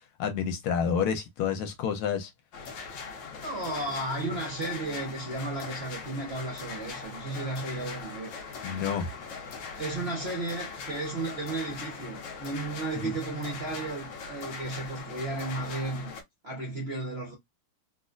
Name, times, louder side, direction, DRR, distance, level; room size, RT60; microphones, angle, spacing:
voice 1, 0.2-2.3 8.6-9.1 12.9-13.1, left 7 dB, 85° left, 1.7 m, -29 dB
sound 1, 2.5-16.2, left 5 dB, 65° left, 1.5 m, -41 dB
voice 2, 3.4-8.3 9.8-16.1 16.4-17.3, right 2 dB, 55° right, 0.7 m, -34 dB
4.2 x 2.5 x 2.4 m
omnidirectional pair, 2.3 m